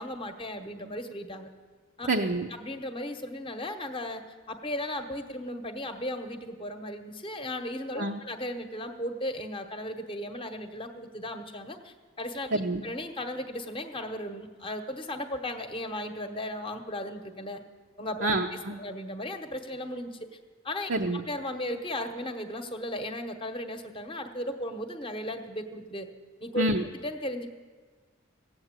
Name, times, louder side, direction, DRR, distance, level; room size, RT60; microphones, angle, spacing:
voice 1, 0.0-1.5 2.0-2.1 2.6-4.2 4.5-12.5 12.8-17.6 18.0-18.3 18.8-20.3 20.6-20.9 21.3-26.1 26.4-26.6 27.0-27.5, left 1 dB, 25° left, 7 dB, 0.9 m, -36 dB
voice 2, 2.1-2.5 8.0-8.2 12.5-12.8 18.2-18.8 20.9-21.2 26.6-26.8, right 2 dB, 55° right, 2 dB, 0.7 m, -27 dB
16.0 x 7.9 x 8.9 m, 1.5 s
head